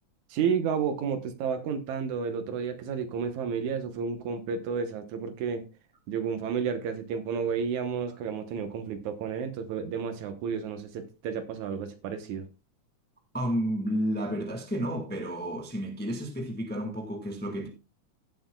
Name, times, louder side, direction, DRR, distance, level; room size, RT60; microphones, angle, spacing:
voice 1, 0.3-5.7 6.1-12.5, right 6 dB, 75° right, 2.4 m, -31 dB
voice 2, 13.3-17.7, equal, 5° left, 0.8 m, -31 dB
16.5 x 7.7 x 2.3 m
omnidirectional pair, 3.4 m